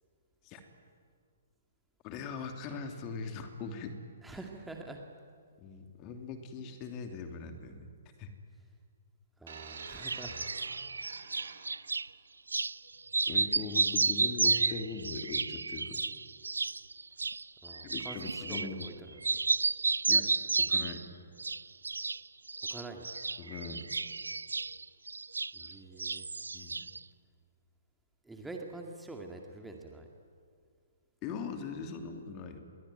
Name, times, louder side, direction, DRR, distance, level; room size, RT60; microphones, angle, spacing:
voice 1, 2.0-4.0 5.6-7.9 8.2-8.3 13.3-16.0 17.8-18.9 20.1-20.3 20.6-21.1 23.4-23.9 26.5-26.8 31.2-32.7, left 5 dB, 25° left, 6 dB, 2.9 m, -40 dB
voice 2, 4.2-5.0 9.4-10.4 17.6-19.2 22.7-23.1 25.5-26.3 28.2-30.1, right 2 dB, 5° right, 2 dB, 2.2 m, -45 dB
sound 1, 9.5-12.0 12.9-13.1, right 5 dB, 50° right, 3.9 m, -48 dB
sound 2, 9.8-12.1 12.5-12.8 13.1-19.0 19.2-21.1 21.4-22.2 22.5-25.7 26.0-27.0, right 4 dB, 70° right, 0.6 m, -32 dB
27.5 x 22.5 x 9.4 m, 2.1 s
figure-of-eight pair, 125°, 0 cm